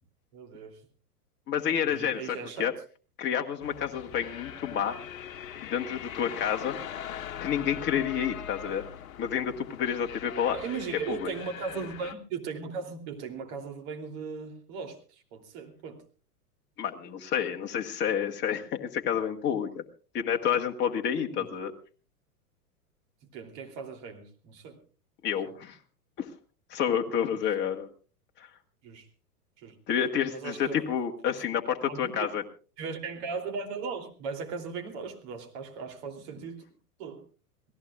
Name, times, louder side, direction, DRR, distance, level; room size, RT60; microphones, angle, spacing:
voice 1, 0.3-0.8 1.8-2.7 10.5-16.0 21.3-21.5 23.3-24.8 28.8-29.1 29.6-29.8 30.3-30.9 31.3-31.4 31.9-32.3 32.8-36.7 37.0-37.3, right 5 dB, 45° right, 4 dB, 3.1 m, -38 dB
voice 2, 1.5-2.7 3.2-5.0 5.6-6.8 7.4-8.8 9.2-10.6 11.1-11.3 16.8-19.8 20.1-21.7 25.2-25.8 26.2-26.3 26.7-27.9 28.4-28.5 29.9-32.4, left 8 dB, 25° left, 3 dB, 1.4 m, -29 dB
sound 1, 3.6-12.1, left 9 dB, 60° left, 1.1 m, -41 dB
27.0 x 17.5 x 2.4 m, 0.37 s
figure-of-eight pair, 100°, 46 cm